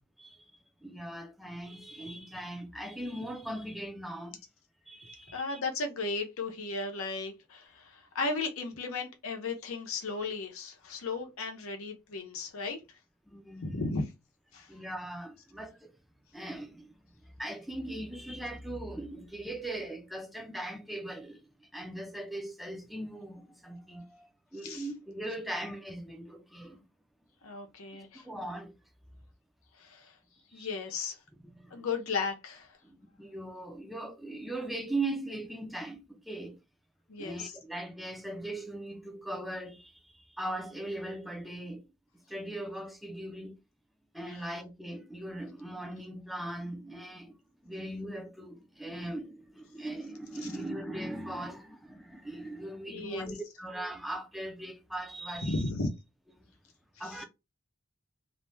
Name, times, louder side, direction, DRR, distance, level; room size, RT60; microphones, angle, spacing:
voice 1, 0.2-0.5 0.8-4.4 4.9-5.6 13.3-13.8 14.6-16.0 16.3-17.0 17.2-26.8 28.0-28.8 30.5-30.7 31.3-31.9 32.8-36.6 37.2-41.9 42.3-43.6 44.1-47.4 47.6-55.6 56.4-56.5 57.0-57.2, right 1 dB, ahead, 0.4 m, -40 dB
voice 2, 5.3-12.8 13.6-14.0 14.5-14.7 24.6-24.8 27.4-28.2 29.8-30.1 30.5-31.2 31.7-32.7 37.1-37.5 44.3-44.4 52.9-53.3 55.4-55.9 57.0-57.2, left 3 dB, 90° left, 0.7 m, -35 dB
2.6 x 2.1 x 3.2 m
head